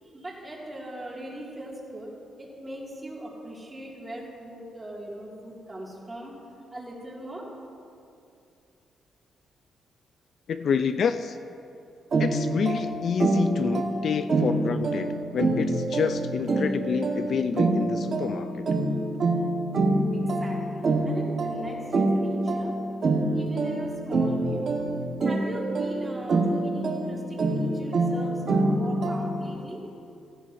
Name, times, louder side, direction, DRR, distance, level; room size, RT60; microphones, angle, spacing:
voice 1, 0.0-2.1 2.4-6.3 6.7-7.4 20.1-22.7 23.3-24.7 25.2-29.8, right 1 dB, 15° right, -4 dB, 2.1 m, -39 dB
voice 2, 10.5-11.4 12.2-18.7, left 6 dB, 50° left, 10 dB, 0.3 m, -28 dB
sound 1, 12.1-29.6, right 2 dB, 40° right, 1.3 m, -26 dB
16.0 x 15.5 x 2.6 m, 2.6 s
cardioid pair, 165°, 0 cm